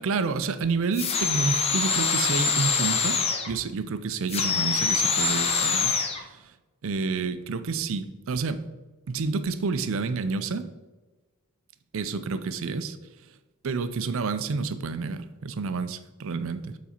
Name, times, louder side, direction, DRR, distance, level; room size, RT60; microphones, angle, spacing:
voice 1, 0.0-3.2 3.5-6.5 6.8-8.6 9.1-10.7 11.9-13.0 13.6-16.8, right 4 dB, 65° right, 11 dB, 0.5 m, -29 dB
sound 1, 0.9-3.5 4.3-6.2, left 5 dB, 30° left, 0.6 m, -25 dB
7.1 x 4.1 x 4.4 m, 1.2 s
head